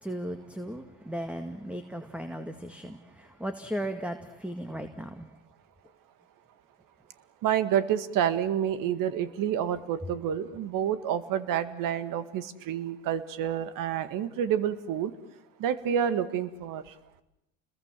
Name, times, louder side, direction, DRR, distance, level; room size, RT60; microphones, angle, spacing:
voice 1, 0.0-5.3, right 1 dB, 5° right, 8 dB, 1.9 m, -36 dB
voice 2, 7.4-15.1 15.6-16.8, right 9 dB, 60° right, 13 dB, 1.9 m, -28 dB
30.0 x 21.5 x 7.6 m, 0.85 s
hypercardioid pair, 75°, 37 cm